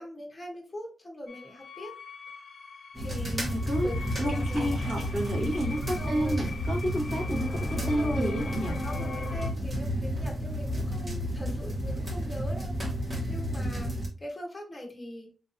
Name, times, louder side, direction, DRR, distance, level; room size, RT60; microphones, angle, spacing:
voice 1, 0.0-1.9 3.0-3.4 3.8-5.0 5.7-6.4 7.8-8.3 8.7-15.3, left 1 dB, 15° left, 0 dB, 1.0 m, -41 dB
sound 1, 1.3-9.5, left 4 dB, 55° left, 0.5 m, -42 dB
sound 2, 2.9-14.1, equal, 30° right, 0.9 m, -31 dB
Liquid, 3.1-8.7, equal, 85° right, 1.6 m, -47 dB
voice 2, 3.3-8.8, equal, 55° right, -2 dB, 1.3 m, -31 dB
3.9 x 2.7 x 2.6 m, 0.36 s
wide cardioid pair, 180°, 0 cm